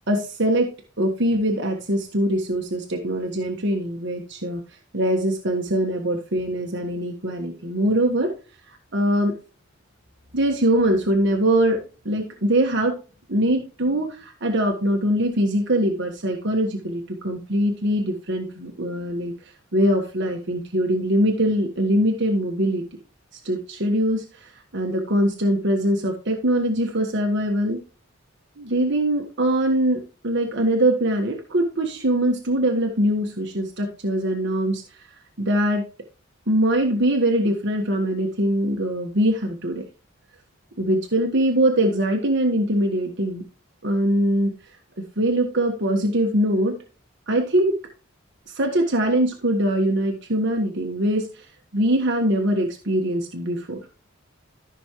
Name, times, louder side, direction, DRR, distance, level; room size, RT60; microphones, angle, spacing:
voice 1, 0.1-0.7 1.0-4.6 4.9-8.3 8.9-9.3 10.3-11.8 12.0-12.9 13.3-19.3 19.7-22.8 23.3-27.8 28.6-34.8 35.4-35.8 36.5-39.8 40.8-43.4 43.8-44.5 45.2-46.7 47.3-47.8 48.5-51.5 51.7-53.8, right 1 dB, 60° right, 2 dB, 1.4 m, -22 dB
14.5 x 6.2 x 3.0 m, 0.34 s
head